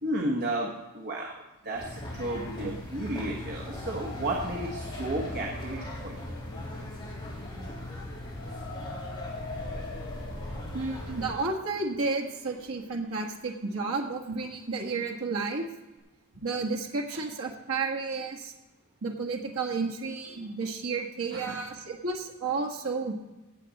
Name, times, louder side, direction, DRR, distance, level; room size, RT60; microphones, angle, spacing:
voice 1, 0.0-1.3 1.6-6.3 17.1-17.2 20.2-20.4 21.3-21.6, right 1 dB, 50° right, -1 dB, 1.4 m, -33 dB
sound 1, 1.7-11.3, left 1 dB, 20° left, 3.8 m, -39 dB
sound 2, 3.6-13.3, left 3 dB, 75° left, 2.3 m, -45 dB
voice 2, 10.7-15.6 16.3-18.5 19.0-23.1, right 4 dB, 70° right, 1 dB, 1.5 m, -32 dB
17.0 x 7.8 x 4.1 m, 1.1 s
head